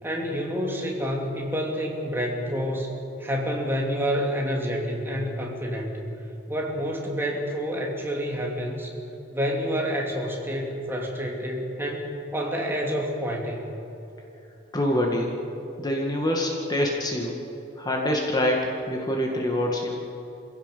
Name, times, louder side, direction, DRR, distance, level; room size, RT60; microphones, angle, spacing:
voice 1, 0.0-2.9 3.2-6.0 6.5-8.9 9.3-13.6, equal, 10° right, -1 dB, 2.9 m, -28 dB
voice 2, 14.7-15.3 15.8-17.3 17.8-20.0, left 1 dB, 20° left, 0 dB, 2.1 m, -25 dB
27.0 x 16.5 x 7.0 m, 2.9 s
head